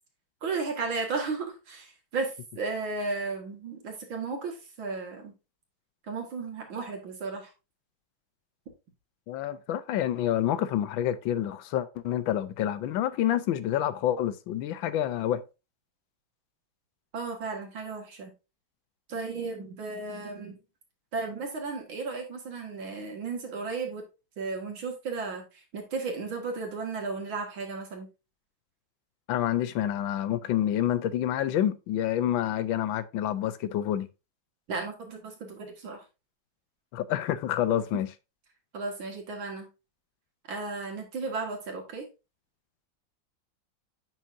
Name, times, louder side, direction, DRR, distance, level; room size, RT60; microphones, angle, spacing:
voice 1, 0.4-5.3 6.1-7.5 17.1-18.3 19.1-20.6 21.1-24.0 24.4-28.1 34.7-36.0 38.7-39.7 40.5-42.1, right 4 dB, 85° right, 2.6 m, -34 dB
voice 2, 9.3-15.4 29.3-34.1 36.9-38.1, left 11 dB, 90° left, 1.4 m, -28 dB
9.1 x 6.0 x 2.6 m
omnidirectional pair, 2.1 m